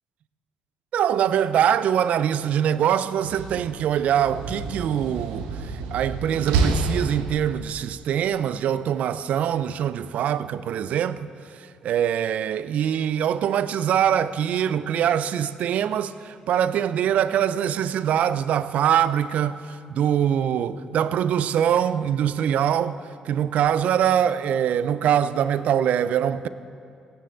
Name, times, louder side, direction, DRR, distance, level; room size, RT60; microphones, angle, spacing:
voice 1, 0.9-11.3 11.6-23.0 23.2-26.5, right 9 dB, 65° right, 0.5 m, -23 dB
Slam, 3.1-7.8, right 4 dB, 80° right, 0.9 m, -28 dB
23.0 x 9.6 x 3.9 m
hypercardioid pair, 45°, 3 cm